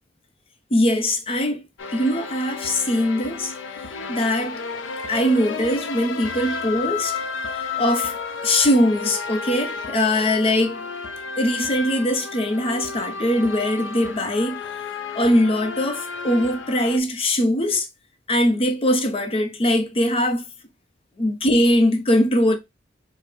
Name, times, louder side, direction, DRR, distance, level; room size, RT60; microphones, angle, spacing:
voice 1, 0.7-1.7 1.9-3.5 4.1-4.6 5.1-7.2 7.5-8.1 8.4-10.9 11.4-14.6 15.1-17.9 18.3-20.4 21.2-22.5, left 1 dB, 30° left, 0.6 m, -21 dB
sound 1, 1.8-17.0, left 5 dB, 85° left, 0.5 m, -32 dB
4.2 x 2.1 x 3.3 m
head